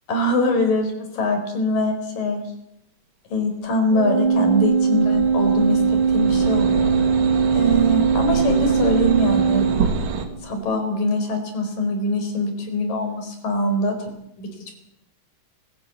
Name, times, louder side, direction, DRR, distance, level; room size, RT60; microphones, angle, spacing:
voice 1, 0.1-2.4 3.3-6.9 7.5-9.7 10.4-13.9 14.4-14.5, left 1 dB, 80° left, 5 dB, 6.0 m, -23 dB
Organ, 3.9-10.5, right 6 dB, 40° right, 0.7 m, -20 dB
sound 1, 4.2-10.3, right 5 dB, 80° right, 3.8 m, -28 dB
24.5 x 16.5 x 8.4 m, 0.80 s
omnidirectional pair, 3.8 m